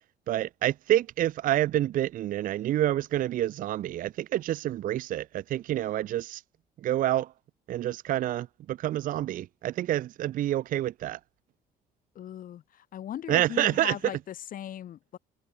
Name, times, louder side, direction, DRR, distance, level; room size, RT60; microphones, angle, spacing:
voice 1, 0.3-6.4 6.8-7.3 7.7-11.2 13.3-14.0, right 13 dB, 55° right, 0.5 m, -28 dB
voice 2, 12.1-15.2, left 11 dB, 55° left, 1.7 m, -38 dB
cardioid pair, 110°, 17 cm